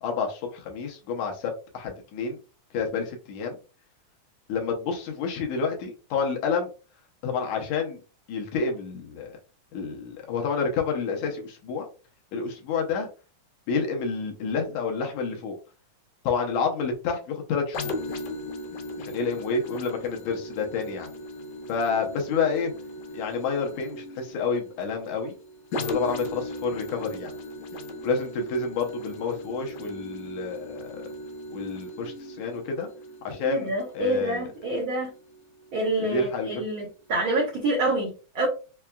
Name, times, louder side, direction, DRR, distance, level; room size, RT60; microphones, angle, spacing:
voice 1, 0.0-2.4 2.7-3.6 4.5-6.7 7.2-8.0 8.3-9.4 9.7-11.9 12.3-13.1 13.7-15.6 16.2-18.0 19.0-21.1 21.7-22.7 23.1-25.4 25.8-27.3 28.0-31.1 31.5-32.9 33.2-34.4 36.0-36.6, left 5 dB, 75° left, 2.1 m, -29 dB
sound 1, 17.7-35.3 35.8-35.9, left 1 dB, 90° left, 2.3 m, -38 dB
voice 2, 33.4-35.1 35.7-38.5, right 2 dB, 90° right, 1.1 m, -27 dB
5.6 x 2.3 x 2.2 m
omnidirectional pair, 3.5 m